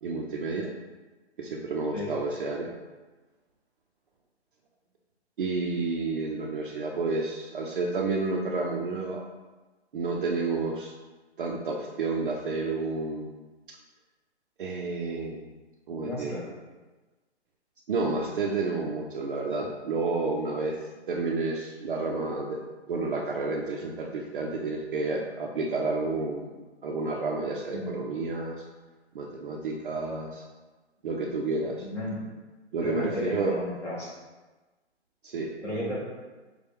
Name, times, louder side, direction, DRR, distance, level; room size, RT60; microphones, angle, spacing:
voice 1, 0.0-0.7 1.4-2.7 5.4-9.2 9.9-10.9 11.4-13.4 14.6-15.5 15.9-16.3 17.9-20.8 21.1-22.6 22.9-26.5 26.8-28.6 29.1-30.4 31.0-31.9 32.7-33.6 35.2-35.5, right 3 dB, 50° right, 0 dB, 0.5 m, -30 dB
voice 2, 16.0-16.5 27.7-27.9 31.8-32.2 32.8-34.1 35.6-36.0, left 1 dB, 5° left, -7 dB, 0.6 m, -33 dB
6.5 x 2.2 x 3.4 m, 1.2 s
hypercardioid pair, 145°, 34 cm